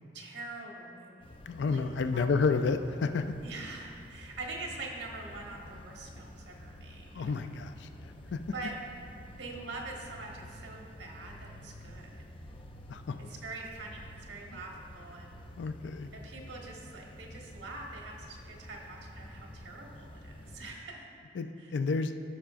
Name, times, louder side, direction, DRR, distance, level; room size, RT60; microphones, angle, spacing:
voice 1, 0.1-1.4 1.7-2.5 3.4-7.4 8.5-8.8 9.4-12.2 13.2-15.3 16.1-21.1 21.6-21.7, right 3 dB, 90° right, -1 dB, 1.3 m, -44 dB
sound 1, 1.2-20.8, left 1 dB, 30° left, 0.5 m, -49 dB
voice 2, 1.5-3.3 7.1-7.9 8.3-8.4 12.9-13.2 15.6-16.1 21.4-22.1, left 4 dB, 80° left, 8 dB, 0.4 m, -30 dB
15.5 x 5.7 x 2.5 m, 2.5 s
head